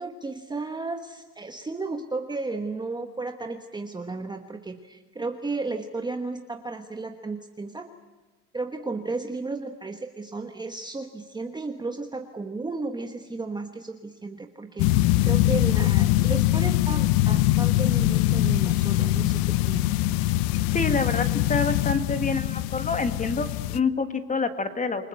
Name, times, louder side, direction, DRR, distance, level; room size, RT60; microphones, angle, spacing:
voice 1, 0.0-7.9 8.5-19.9, right 3 dB, 10° right, 5 dB, 1.2 m, -34 dB
sound 1, 14.8-23.8, left 16 dB, 50° left, 0.8 m, -23 dB
voice 2, 20.7-25.1, left 4 dB, 15° left, 9 dB, 2.0 m, -27 dB
28.5 x 20.0 x 8.1 m, 1.2 s
supercardioid pair, 120°, 47 cm